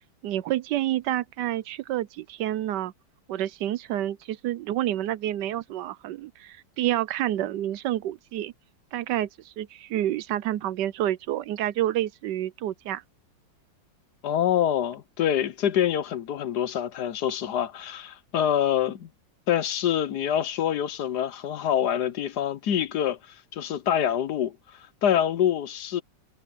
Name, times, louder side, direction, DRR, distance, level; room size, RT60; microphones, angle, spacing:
voice 1, 0.2-2.9 3.3-8.5 8.9-13.0, right 13 dB, 75° right, 1.2 m, -29 dB
voice 2, 14.2-19.1 19.5-26.0, left 10 dB, 65° left, 1.3 m, -26 dB
omnidirectional pair, 2.0 m